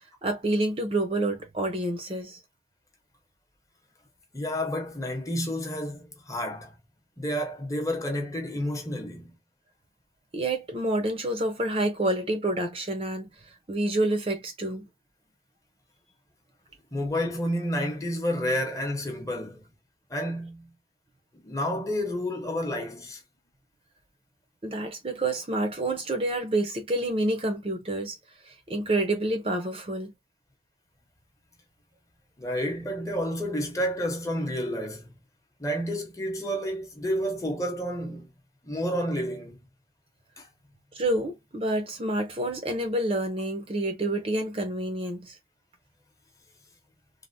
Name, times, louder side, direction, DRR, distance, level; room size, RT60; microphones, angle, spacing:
voice 1, 0.2-2.4 10.3-13.3 13.7-14.9 24.6-28.2 28.5-30.1 40.9-45.4, right 1 dB, 30° right, 0.5 m, -28 dB
voice 2, 4.3-6.7 7.2-9.3 16.9-19.6 20.1-20.7 21.3-23.2 32.4-35.1 35.6-38.3 38.6-39.6 40.4-40.5, equal, 20° left, 0.8 m, -30 dB
3.3 x 2.1 x 2.6 m
head